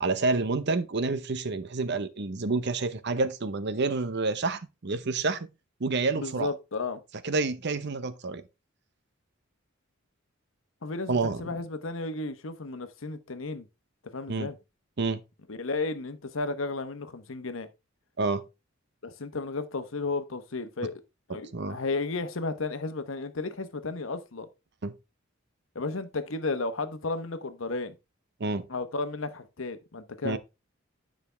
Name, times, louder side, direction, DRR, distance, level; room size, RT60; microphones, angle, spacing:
voice 1, 0.0-5.5 5.8-6.5 7.2-8.4 11.1-11.4 14.3-14.5 15.0-15.2 18.2-18.4 21.5-21.8 24.8-24.9 28.4-28.7 30.2-30.4, right 3 dB, 60° right, 0.8 m, -28 dB
voice 2, 6.2-7.0 10.8-13.7 14.1-14.5 15.5-17.7 19.0-21.0 21.3-24.5 25.7-28.0 28.7-30.4, left 3 dB, 75° left, 1.0 m, -33 dB
9.4 x 5.2 x 3.3 m
head